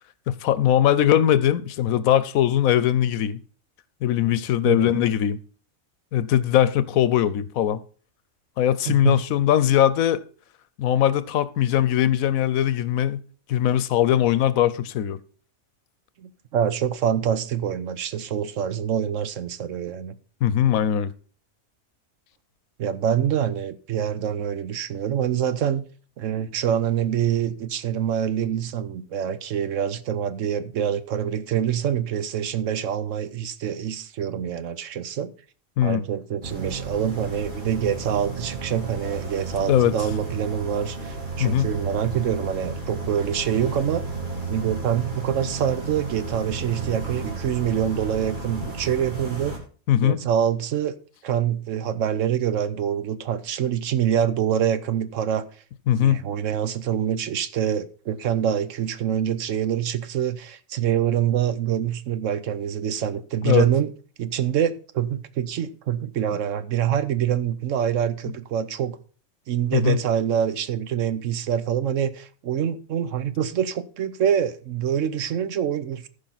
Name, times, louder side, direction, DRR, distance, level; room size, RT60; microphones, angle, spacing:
voice 1, 0.3-3.4 4.0-5.4 6.1-7.8 8.6-10.2 10.8-13.2 13.5-15.2 20.4-21.1 35.8-36.0 39.7-39.9 41.4-41.7 49.9-50.2 55.9-56.2 63.4-63.7 66.3-66.4 69.7-70.0, left 11 dB, 90° left, 1.1 m, -20 dB
voice 2, 4.6-5.0 8.9-9.2 16.2-20.2 22.8-25.9 26.2-35.3 35.8-44.0 44.5-49.5 50.0-50.9 51.2-55.4 56.0-63.9 64.2-69.0 69.5-76.1, right 9 dB, 70° right, 1.1 m, -25 dB
sound 1, 36.4-49.6, right 3 dB, 35° right, 2.4 m, -33 dB
14.5 x 5.4 x 4.1 m
omnidirectional pair, 1.4 m